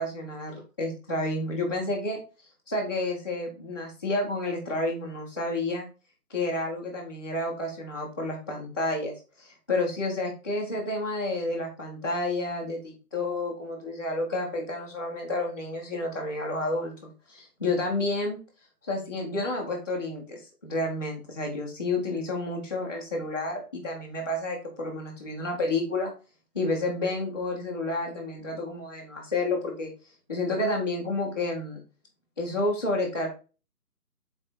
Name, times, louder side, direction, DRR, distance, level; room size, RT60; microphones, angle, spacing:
voice 1, 0.0-2.2 2.7-5.8 6.3-18.4 18.8-26.1 26.5-29.9 30.3-31.8 32.4-33.3, left 2 dB, 15° left, -11 dB, 0.9 m, -30 dB
6.6 x 4.3 x 4.4 m, 0.34 s
figure-of-eight pair, 160°, 47 cm